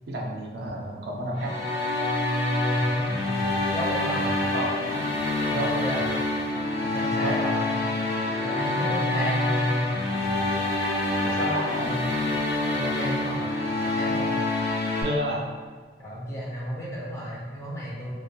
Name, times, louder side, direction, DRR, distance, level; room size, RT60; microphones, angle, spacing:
voice 1, 0.1-1.6 4.5-4.8 5.5-5.7 7.2-7.4 11.2-12.0 15.0-15.5, equal, 60° right, 0 dB, 0.3 m, -30 dB
sound 1, 1.4-15.0, left 2 dB, 85° left, 0.7 m, -26 dB
voice 2, 2.8-4.3 5.5-6.0 6.8-7.9 8.4-10.4 12.7-13.5 13.8-14.4 16.0-18.1, equal, 15° left, -6 dB, 0.4 m, -33 dB
2.2 x 2.2 x 2.7 m, 1.5 s
head